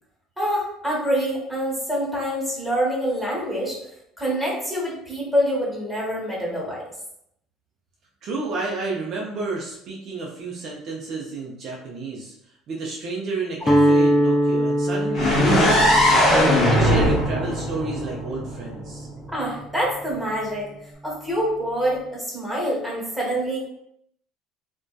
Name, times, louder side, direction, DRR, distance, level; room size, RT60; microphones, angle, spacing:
voice 1, 0.4-3.8 4.2-6.8 19.3-20.7 21.0-23.6, equal, 5° right, -6 dB, 1.1 m, -26 dB
voice 2, 8.2-12.3 12.7-16.4 16.7-19.1, right 3 dB, 50° right, -3 dB, 0.4 m, -31 dB
Guitar, 13.6-19.6, equal, 15° left, 0.4 m, -24 dB
sound 1, 15.1-19.0, equal, 45° left, 0.8 m, -19 dB
2.6 x 2.1 x 2.2 m, 0.76 s
supercardioid pair, 110°, 0 cm